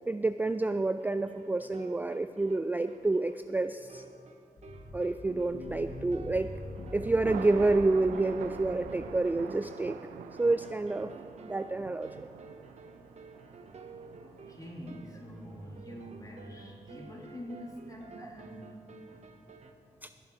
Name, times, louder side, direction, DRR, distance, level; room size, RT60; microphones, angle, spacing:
voice 1, 0.1-4.0 4.9-6.5 6.9-10.0 10.4-11.1 11.4-12.3 20.0-20.1, right 2 dB, 15° right, 10 dB, 0.3 m, -29 dB
sound 1, 0.5-19.7, right 4 dB, 55° right, 1.0 m, -52 dB
sound 2, 4.6-9.2, left 1 dB, 70° left, 2.2 m, -44 dB
Thunder, 6.4-17.7, right 8 dB, 85° right, 0.5 m, -46 dB
voice 2, 14.2-18.9 19.2-19.3, equal, 25° left, -1 dB, 2.9 m, -45 dB
17.5 x 7.0 x 4.6 m, 2.3 s
supercardioid pair, 45°, 14 cm